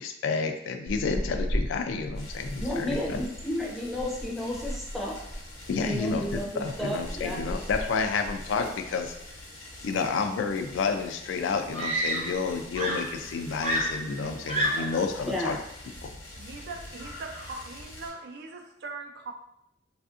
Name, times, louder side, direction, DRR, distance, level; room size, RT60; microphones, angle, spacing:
voice 1, 0.0-3.2 5.7-9.2 9.8-15.6 16.0-16.1, left 5 dB, 70° left, 6 dB, 0.3 m, -30 dB
sound 1, 0.9-9.4 9.6-9.8 10.2-11.1 11.4-11.8 12.0-12.1 12.3-12.8 13.3-13.8, equal, 75° right, 0.9 m, -37 dB
sound 2, 2.1-18.1, left 1 dB, 85° left, 0.9 m, -45 dB
voice 2, 2.6-5.1 5.8-7.4 15.3-15.5, left 1 dB, ahead, -3 dB, 0.5 m, -32 dB
Screaming, 11.7-12.5 12.8-15.1 16.0-16.3, right 1 dB, 35° right, 0.8 m, -29 dB
voice 3, 16.4-19.3, right 3 dB, 55° right, 4 dB, 0.4 m, -40 dB
3.4 x 2.5 x 2.4 m, 0.77 s
head